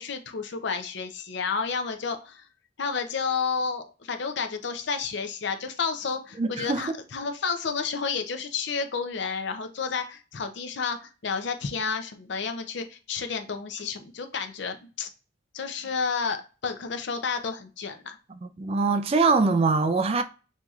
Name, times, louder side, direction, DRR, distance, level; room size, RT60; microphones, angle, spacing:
voice 1, 0.0-2.5 2.8-15.1 15.5-18.2, left 5 dB, 60° left, 0.5 m, -31 dB
voice 2, 6.4-6.8 18.4-20.2, right 4 dB, 30° right, 0.3 m, -23 dB
6.1 x 2.8 x 2.3 m
head